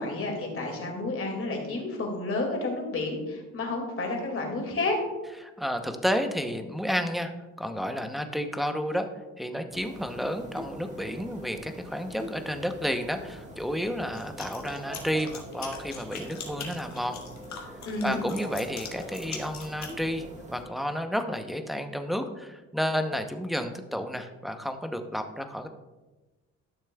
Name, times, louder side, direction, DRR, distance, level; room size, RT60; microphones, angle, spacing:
voice 1, 0.0-5.0 17.8-18.2, left 2 dB, 45° left, 1 dB, 2.2 m, -30 dB
voice 2, 5.4-7.3 7.6-9.1 9.4-17.2 18.0-25.7, equal, ahead, 7 dB, 0.7 m, -31 dB
sound 1, 9.7-20.6, right 1 dB, 25° right, 1.5 m, -44 dB
sound 2, 14.1-19.9, left 6 dB, 65° left, 1.6 m, -41 dB
12.0 x 6.6 x 2.3 m, 1.1 s
cardioid pair, 90°, 30 cm